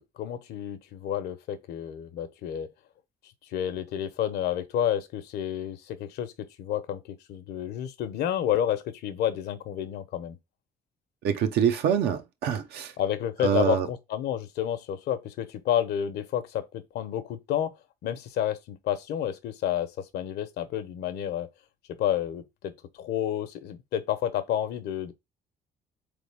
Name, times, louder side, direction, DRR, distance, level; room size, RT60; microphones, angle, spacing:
voice 1, 0.0-2.7 3.5-10.4 13.0-17.7 18.0-21.5 22.0-22.7 23.0-25.1, left 10 dB, 75° left, 0.8 m, -30 dB
voice 2, 11.2-12.9 13.4-13.9, right 8 dB, 75° right, 0.9 m, -25 dB
3.9 x 3.4 x 3.5 m
cardioid pair, 110°, 17 cm